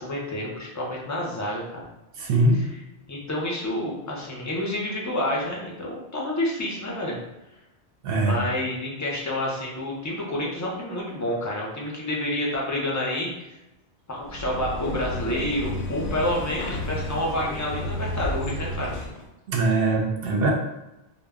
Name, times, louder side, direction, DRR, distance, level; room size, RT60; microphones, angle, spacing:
voice 1, 0.0-1.9 2.5-2.8 3.1-7.2 8.1-13.5 14.1-18.9, left 1 dB, 25° left, -3 dB, 0.4 m, -29 dB
voice 2, 2.2-2.6 8.0-8.4 19.5-20.5, right 2 dB, 65° right, 0 dB, 0.7 m, -22 dB
sound 1, 14.2-19.3, left 1 dB, 60° left, 0.6 m, -32 dB
2.1 x 2.1 x 3.4 m, 0.95 s
omnidirectional pair, 1.1 m